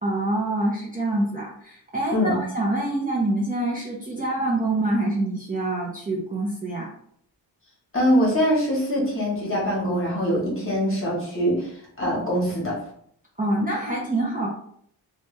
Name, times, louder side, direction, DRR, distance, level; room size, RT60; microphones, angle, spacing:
voice 1, 0.0-6.9 13.4-14.5, right 2 dB, 20° right, -4 dB, 0.5 m, -26 dB
voice 2, 7.9-12.8, equal, 30° left, -4 dB, 1.1 m, -23 dB
3.0 x 2.3 x 3.1 m, 0.66 s
wide cardioid pair, 155°, 41 cm